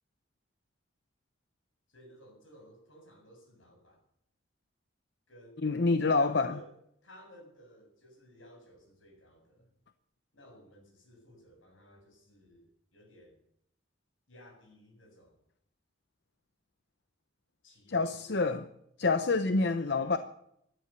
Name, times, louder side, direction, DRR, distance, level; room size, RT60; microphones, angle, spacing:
voice 1, 1.9-4.0 5.3-6.7 7.0-9.7 10.3-13.4 14.3-15.4 17.6-18.4 19.6-20.1, equal, 80° left, 3 dB, 7.1 m, -56 dB
voice 2, 5.6-6.5 17.9-18.7 19.0-20.2, left 3 dB, 55° left, 10 dB, 0.8 m, -27 dB
16.5 x 11.5 x 6.9 m, 0.73 s
head